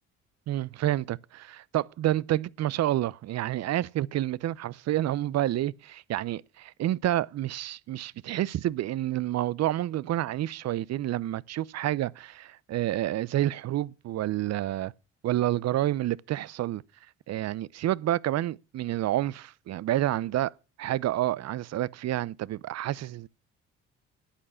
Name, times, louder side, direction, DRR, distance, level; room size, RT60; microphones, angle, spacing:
voice 1, 0.5-14.9 15.2-16.8 17.3-20.5 20.8-23.3, right 13 dB, 55° right, 0.6 m, -29 dB
11.5 x 8.7 x 5.7 m
supercardioid pair, 60°, 32 cm